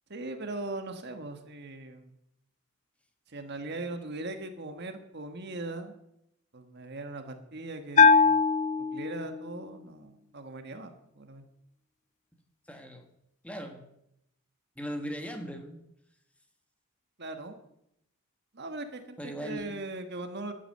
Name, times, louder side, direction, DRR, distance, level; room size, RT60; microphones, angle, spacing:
voice 1, 0.1-2.1 3.3-5.9 6.5-8.1 8.8-11.4 17.2-17.6 18.5-20.5, right 2 dB, 50° right, 7 dB, 1.4 m, -39 dB
Bell, 8.0-9.6, left 5 dB, 30° left, 0.6 m, -21 dB
voice 2, 12.7-13.1 13.4-13.9 14.8-15.8 19.2-19.7, equal, 5° left, 5 dB, 1.5 m, -38 dB
11.5 x 10.0 x 7.7 m, 0.79 s
head